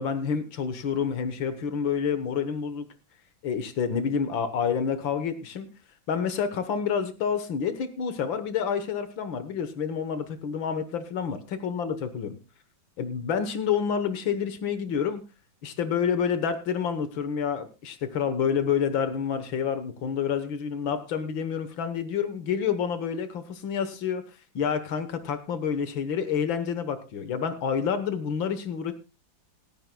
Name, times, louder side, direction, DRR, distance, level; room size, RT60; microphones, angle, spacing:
voice 1, 0.0-2.9 3.4-5.7 6.1-11.4 11.6-12.4 13.0-15.2 15.6-24.2 24.6-28.9, left 7 dB, 75° left, 10 dB, 1.9 m, -28 dB
27.5 x 9.3 x 2.2 m, 0.27 s
omnidirectional pair, 2.2 m